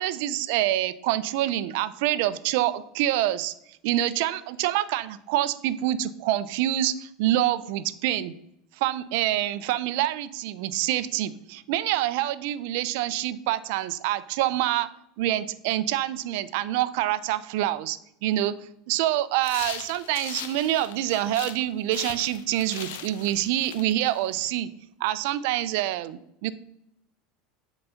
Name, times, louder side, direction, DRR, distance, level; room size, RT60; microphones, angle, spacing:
voice 1, 0.0-3.5 3.8-8.3 8.8-14.9 15.2-18.6 18.9-24.7 25.0-26.5, right 14 dB, 70° right, 16 dB, 0.5 m, -26 dB
sound 1, 19.4-21.6 21.9-24.5, left 10 dB, 80° left, 0.6 m, -40 dB
7.8 x 4.0 x 5.7 m, 0.80 s
supercardioid pair, 130°, 0 cm